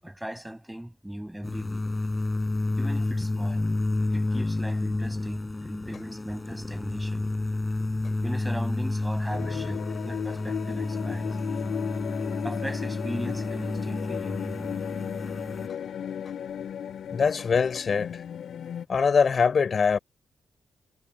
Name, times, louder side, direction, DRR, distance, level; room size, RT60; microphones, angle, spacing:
voice 1, 0.0-1.8 2.7-3.6 4.1-7.2 8.2-11.4 12.4-14.8, right 1 dB, 5° right, 6.5 m, -38 dB
sound 1, 1.4-15.7, left 2 dB, 20° left, 6.2 m, -30 dB
sound 2, 9.3-18.8, left 8 dB, 75° left, 4.5 m, -35 dB
voice 2, 17.1-18.2 18.9-20.0, left 5 dB, 55° left, 4.1 m, -23 dB
cardioid pair, 60°, 0 cm